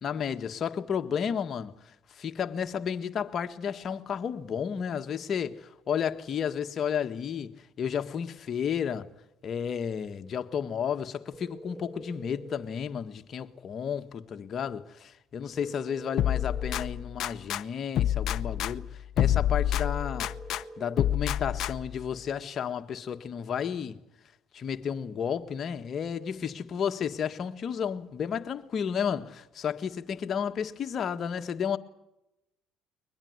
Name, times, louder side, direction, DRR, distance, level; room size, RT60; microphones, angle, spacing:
voice 1, 0.0-1.7 2.1-9.1 9.4-20.3 20.8-24.0 24.5-31.8, left 7 dB, 50° left, 1.6 m, -32 dB
sound 1, 11.3-12.7 15.6-17.0 19.8-21.2, right 1 dB, 15° right, 1.2 m, -45 dB
sound 2, 16.2-17.6 18.0-20.6 21.0-22.0, left 11 dB, 65° left, 0.7 m, -28 dB
22.5 x 20.5 x 8.0 m
supercardioid pair, 70°, 0 cm